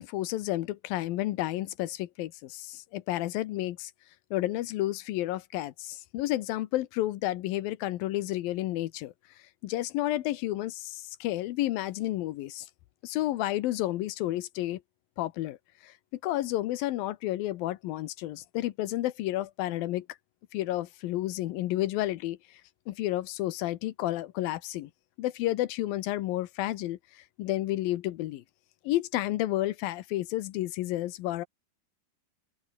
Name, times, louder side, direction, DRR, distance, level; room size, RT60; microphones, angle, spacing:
voice 1, 0.0-3.9 4.3-9.1 9.6-12.7 13.0-14.8 15.2-15.6 15.8-15.9 16.2-20.1 20.5-22.4 22.9-24.9 25.2-28.4 28.8-31.5, left 15 dB, 80° left, 2.7 m, -31 dB
omnidirectional pair, 4.2 m